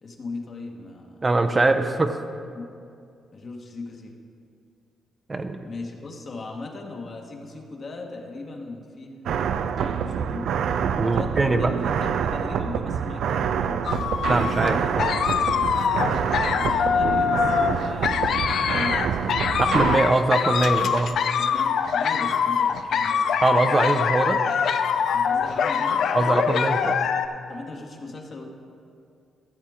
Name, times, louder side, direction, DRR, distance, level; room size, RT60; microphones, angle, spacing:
voice 1, 0.0-1.4 2.5-2.7 3.3-4.1 5.6-10.5 11.0-14.2 14.6-15.2 16.0-19.4 21.3-23.3 25.1-26.1 27.5-28.4, left 3 dB, 50° left, 0 dB, 1.5 m, -38 dB
voice 2, 1.2-2.2 5.3-5.7 11.0-11.7 14.3-15.1 19.6-21.2 23.4-24.4 26.1-27.1, right 2 dB, 30° right, 7 dB, 0.6 m, -22 dB
sound 1, 9.3-20.0, right 7 dB, 75° right, 0.4 m, -26 dB
sound 2, 13.9-27.3, left 7 dB, 70° left, 0.4 m, -24 dB
14.5 x 7.5 x 3.6 m, 2.4 s
supercardioid pair, 65°, 0 cm